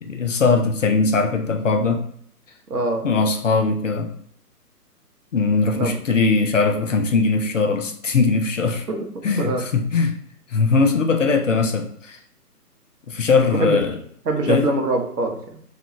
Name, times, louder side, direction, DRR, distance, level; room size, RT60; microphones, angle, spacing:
voice 1, 0.0-2.1 3.0-4.1 5.3-8.9 9.2-10.2 10.5-12.2 13.1-13.9 14.5-14.6, left 4 dB, 55° left, 5 dB, 0.5 m, -20 dB
voice 2, 2.7-3.1 5.7-6.0 8.9-9.0 9.4-9.6 13.4-13.8 14.3-15.6, right 2 dB, 75° right, 3 dB, 0.8 m, -23 dB
2.9 x 2.3 x 2.9 m, 0.64 s
figure-of-eight pair, 140°, 48 cm